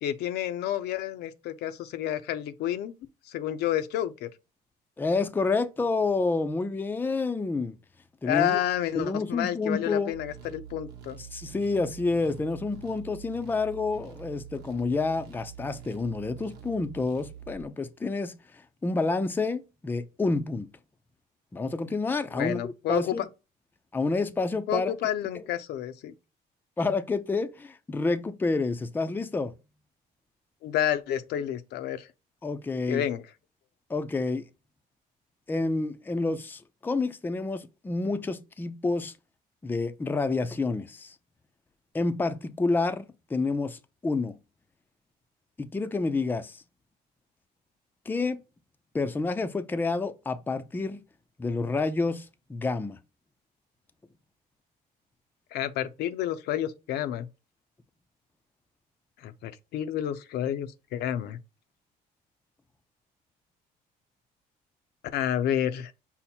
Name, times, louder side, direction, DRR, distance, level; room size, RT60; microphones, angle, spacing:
voice 1, 0.0-2.9 3.3-4.3 8.2-11.2 22.3-23.2 24.7-26.1 30.6-32.1 32.9-33.2 55.5-57.3 59.2-61.4 65.1-65.9, left 11 dB, 75° left, 0.6 m, -30 dB
voice 2, 5.0-7.8 8.2-8.6 9.0-10.1 11.3-18.3 18.8-20.7 21.5-23.2 23.9-24.9 25.3-25.5 26.8-29.5 32.4-33.0 33.9-34.5 35.5-39.1 39.6-41.1 41.9-44.4 45.6-46.6 48.1-48.4 48.9-51.0 51.4-53.0, left 3 dB, 10° left, 0.4 m, -29 dB
sound 1, 10.1-17.6, right 9 dB, 85° right, 0.9 m, -46 dB
5.5 x 2.1 x 4.2 m
cardioid pair, 110°, 17 cm